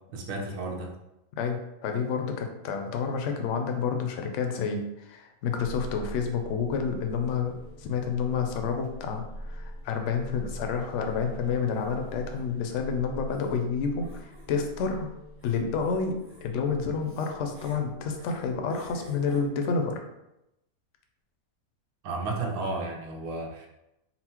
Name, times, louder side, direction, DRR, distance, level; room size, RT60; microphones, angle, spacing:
voice 1, 0.1-0.9 22.0-23.7, right 3 dB, 80° right, 1 dB, 1.2 m, -33 dB
voice 2, 1.4-15.1 15.4-20.0, left 5 dB, 65° left, 4 dB, 0.8 m, -29 dB
sound 1, 5.6-19.5, equal, 15° right, 0.5 m, -43 dB
4.2 x 2.0 x 4.3 m, 0.89 s
omnidirectional pair, 1.5 m